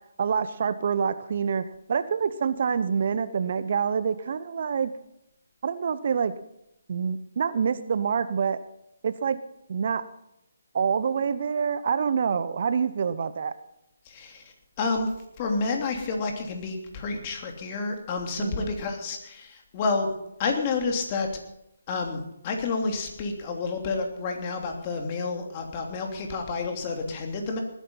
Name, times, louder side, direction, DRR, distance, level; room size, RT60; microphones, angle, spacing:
voice 1, 0.2-4.9 5.6-6.3 6.9-8.6 9.0-9.4 9.7-10.0 10.7-13.5 18.4-18.7, right 6 dB, 50° right, 13 dB, 0.9 m, -26 dB
voice 2, 14.0-15.1 15.4-20.1 20.4-21.3 21.9-27.6, left 4 dB, 30° left, 3 dB, 3.0 m, -29 dB
20.0 x 10.0 x 5.7 m, 0.82 s
figure-of-eight pair, 150°, 0 cm